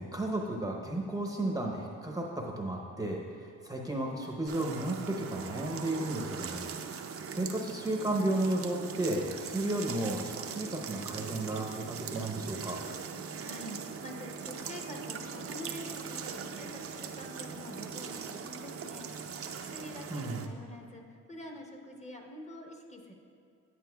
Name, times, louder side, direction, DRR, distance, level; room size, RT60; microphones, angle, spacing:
voice 1, 0.0-6.7 7.3-12.8 20.1-20.4, right 1 dB, 10° right, -1 dB, 0.7 m, -33 dB
sound 1, 4.5-20.5, right 6 dB, 50° right, 0.6 m, -40 dB
voice 2, 13.4-19.4 19.7-23.1, left 1 dB, 25° left, 1 dB, 1.0 m, -46 dB
9.4 x 8.8 x 2.3 m, 2.4 s
cardioid pair, 90°, 30 cm